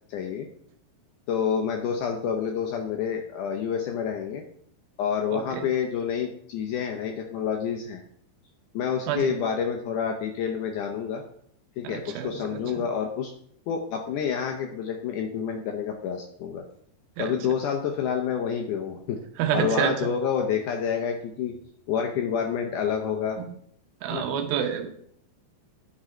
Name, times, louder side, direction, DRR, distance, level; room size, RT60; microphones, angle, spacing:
voice 1, 0.1-0.5 1.3-4.4 5.0-8.0 8.7-11.2 11.8-13.3 13.7-16.6 17.2-19.2 19.5-21.6 21.9-23.4 24.1-24.3, left 7 dB, 75° left, 3 dB, 1.9 m, -28 dB
voice 2, 5.3-5.7 9.1-9.3 11.8-12.4 17.2-17.3 19.4-19.9 24.0-24.9, right 9 dB, 80° right, 5 dB, 2.6 m, -27 dB
11.0 x 3.8 x 4.3 m, 0.64 s
omnidirectional pair, 4.3 m